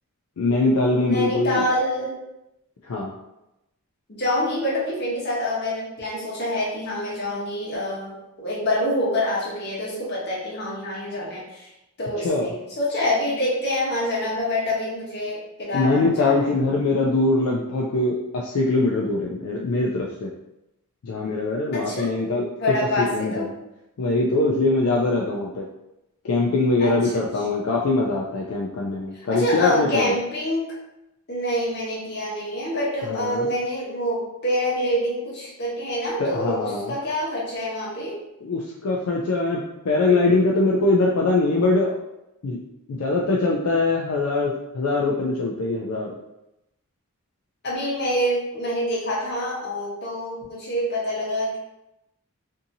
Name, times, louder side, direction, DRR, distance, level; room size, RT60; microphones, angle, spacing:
voice 1, 0.4-1.6 2.8-3.1 12.2-12.5 15.7-20.3 21.0-22.5 23.0-23.4 24.0-25.7 26.2-30.1 33.1-33.5 36.2-36.9 38.4-39.6 39.8-42.0 42.4-42.6 42.9-46.1, left 2 dB, 75° left, -2 dB, 0.4 m, -22 dB
voice 2, 1.1-2.2 4.1-11.7 12.0-16.5 21.7-22.3 22.6-23.5 26.8-27.2 29.3-30.7 31.3-38.2 47.6-51.6, left 1 dB, 50° left, -5 dB, 0.9 m, -26 dB
2.7 x 2.7 x 2.6 m, 0.90 s
head